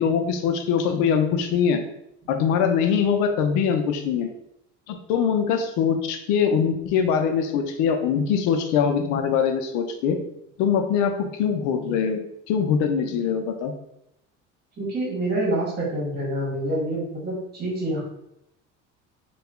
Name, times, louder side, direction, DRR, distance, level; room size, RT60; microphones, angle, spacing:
voice 1, 0.0-1.8 2.3-4.3 4.9-10.2 10.6-12.2 12.5-13.7, left 7 dB, 80° left, 6 dB, 0.6 m, -22 dB
voice 2, 14.8-18.0, right 1 dB, 35° right, -3 dB, 1.4 m, -27 dB
2.8 x 2.3 x 3.5 m, 0.80 s
cardioid pair, 125°, 29 cm